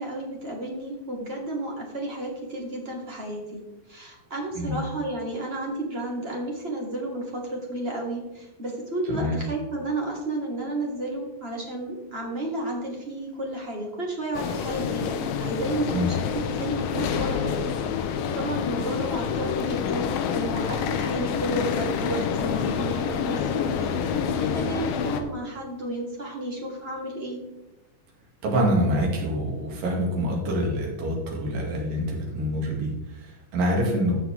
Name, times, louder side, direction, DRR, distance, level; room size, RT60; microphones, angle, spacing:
voice 1, 0.0-3.6 3.9-27.4, right 1 dB, 30° right, -1 dB, 1.0 m, -32 dB
voice 2, 9.1-9.4 15.9-16.1 28.4-34.2, equal, 80° right, -1 dB, 4.0 m, -26 dB
sound 1, 14.3-25.2, left 7 dB, 85° left, 2.5 m, -27 dB
14.5 x 6.1 x 3.5 m, 0.98 s
omnidirectional pair, 4.0 m